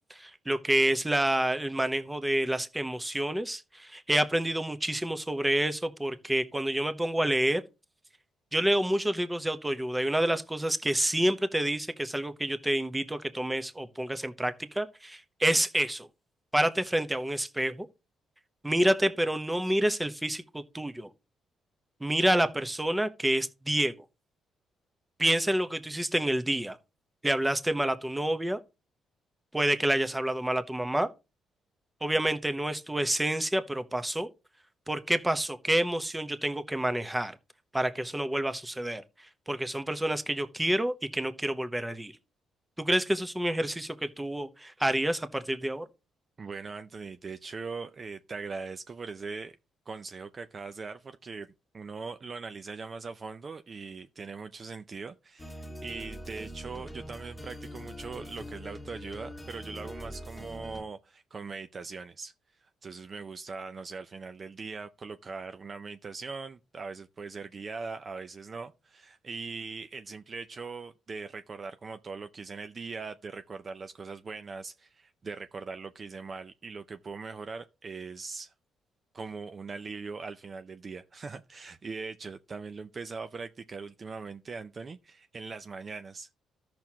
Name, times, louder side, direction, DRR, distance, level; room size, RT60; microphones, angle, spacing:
voice 1, 0.1-7.6 8.5-16.1 16.5-17.9 18.6-21.1 22.0-23.9 25.2-26.8 27.2-28.6 29.5-31.1 32.0-34.3 34.9-37.4 37.7-39.0 39.5-42.1 42.8-45.8, right 1 dB, 10° right, 0.9 m, -28 dB
voice 2, 46.4-49.6 49.9-62.3 62.6-78.5 79.1-86.3, right 4 dB, 40° right, 0.5 m, -41 dB
sound 1, 55.4-60.8, equal, 10° left, 1.5 m, -43 dB
13.5 x 6.0 x 2.9 m
cardioid pair, 90°, 0 cm